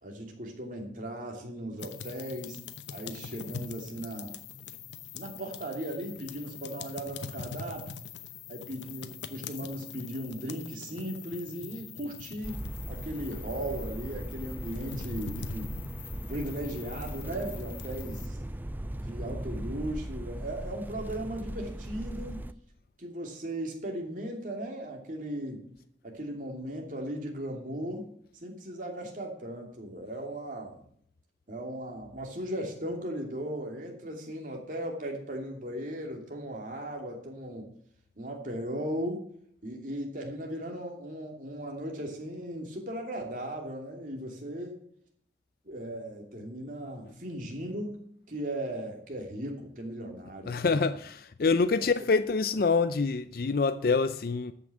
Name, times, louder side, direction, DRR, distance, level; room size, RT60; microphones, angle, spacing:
voice 1, 0.0-2.6 2.9-4.3 5.1-7.9 8.5-15.7 16.3-18.4 18.9-22.4 23.0-25.7 26.0-28.1 28.3-30.8 31.5-37.7 38.2-39.2 39.6-44.8 45.6-50.6 51.8-51.9, right 1 dB, 45° right, 2.7 m, -37 dB
sound 1, 1.8-18.3, left 6 dB, 85° left, 0.9 m, -43 dB
sound 2, 12.4-22.5, right 1 dB, 10° right, 0.4 m, -38 dB
voice 2, 50.5-54.5, left 4 dB, 55° left, 0.5 m, -26 dB
13.5 x 6.0 x 7.8 m
head